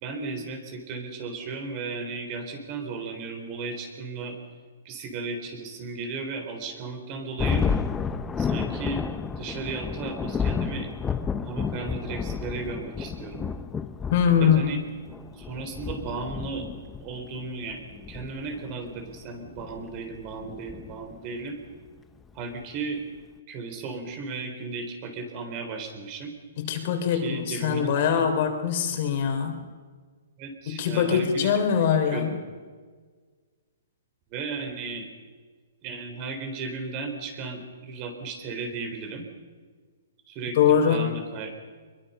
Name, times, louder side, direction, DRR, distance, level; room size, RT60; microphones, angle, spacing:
voice 1, 0.0-4.4 4.8-7.7 8.4-9.0 9.4-10.9 11.5-13.5 14.4-14.8 15.3-16.7 17.0-17.8 18.1-21.6 22.3-23.0 23.5-26.3 27.1-28.3 30.4-31.5 32.1-32.4 34.3-35.1 35.8-39.2 40.3-41.5, right 4 dB, 30° right, 6 dB, 4.0 m, -35 dB
Thunder, 7.4-21.4, left 6 dB, 10° left, 0.8 m, -31 dB
voice 2, 14.1-14.7 26.6-29.6 30.7-32.4 40.6-41.1, left 7 dB, 45° left, 5 dB, 3.6 m, -23 dB
23.5 x 22.5 x 5.6 m, 1.5 s
hypercardioid pair, 155°, 0 cm